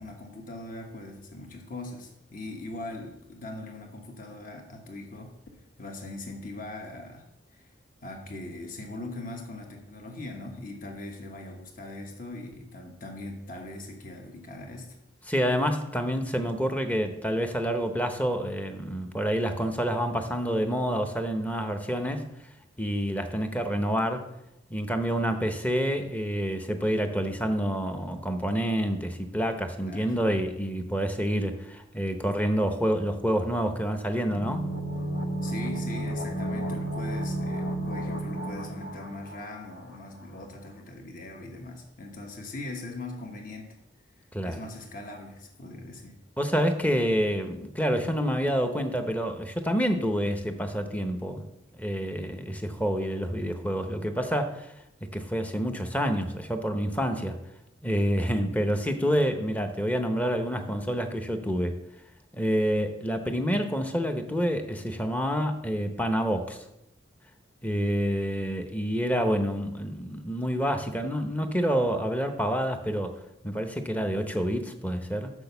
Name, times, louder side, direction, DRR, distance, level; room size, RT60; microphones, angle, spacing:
voice 1, 0.0-7.3 7.5-7.7 8.0-15.0 29.8-30.1 35.4-43.8 44.4-46.2, left 2 dB, 45° left, 3 dB, 1.1 m, -41 dB
voice 2, 15.3-22.3 22.8-24.2 24.7-34.7 44.3-44.6 46.4-51.5 51.8-54.7 55.1-57.4 57.8-61.8 62.3-66.6 67.6-73.1 73.4-75.3, equal, 10° left, 6 dB, 0.7 m, -28 dB
sound 1, 34.3-40.0 40.2-40.3, right 1 dB, 80° left, 1.0 m, -32 dB
6.2 x 6.2 x 6.8 m, 0.87 s
head